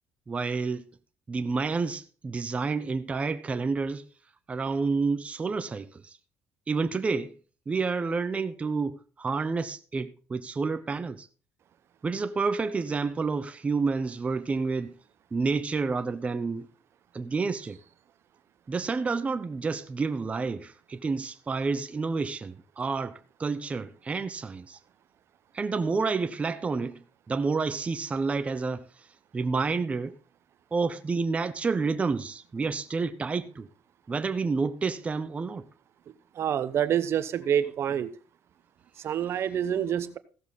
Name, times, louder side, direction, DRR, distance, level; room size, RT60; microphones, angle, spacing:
voice 1, 0.3-0.9 1.3-4.1 4.5-6.2 6.7-7.3 7.7-11.3 12.0-15.0 15.3-16.7 17.1-17.8 18.7-24.8 25.5-29.1 29.3-30.1 30.7-33.7 34.1-35.7, right 4 dB, 25° right, 0.7 m, -29 dB
voice 2, 36.4-38.1 39.0-40.2, right 9 dB, 50° right, 0.9 m, -27 dB
16.0 x 6.9 x 4.1 m
cardioid pair, 110°, 5 cm